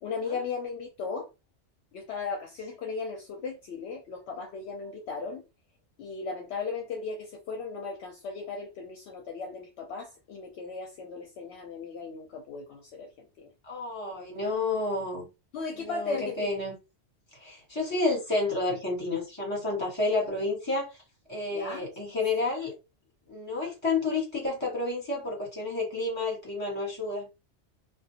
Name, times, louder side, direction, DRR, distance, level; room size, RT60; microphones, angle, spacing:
voice 1, 0.0-1.3 1.9-5.4 6.0-13.5 15.5-16.5 21.5-21.8, left 4 dB, 70° left, 0.8 m, -36 dB
voice 2, 13.7-15.3 15.7-16.7 17.3-21.0 21.3-22.7 23.3-27.3, left 3 dB, 25° left, 1.3 m, -30 dB
2.4 x 2.3 x 2.7 m
omnidirectional pair, 1.2 m